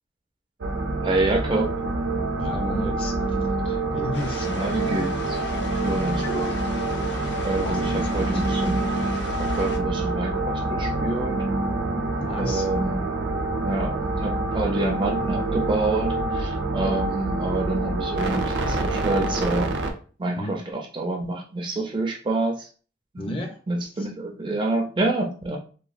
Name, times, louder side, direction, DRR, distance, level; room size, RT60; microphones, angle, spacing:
sound 1, 0.6-19.9, right 2 dB, 85° right, 0.5 m, -26 dB
voice 1, 1.0-1.7 4.5-5.4 5.8-6.2 7.4-8.8 9.6-11.4 12.4-13.2 13.6-19.7 20.2-22.7 23.1-23.3 23.7-25.6, right 2 dB, 25° right, 1 dB, 0.4 m, -27 dB
voice 2, 2.4-3.4 3.6-4.5 6.1-6.7 7.6-8.4 12.2-12.7 14.0-14.2 18.2-18.4 20.4-20.6 23.2-23.6 24.0-24.1, left 1 dB, 30° left, 2 dB, 0.5 m, -34 dB
sound 2, 4.1-9.8, left 3 dB, 75° left, 0.6 m, -36 dB
2.9 x 2.3 x 2.4 m, 0.39 s
head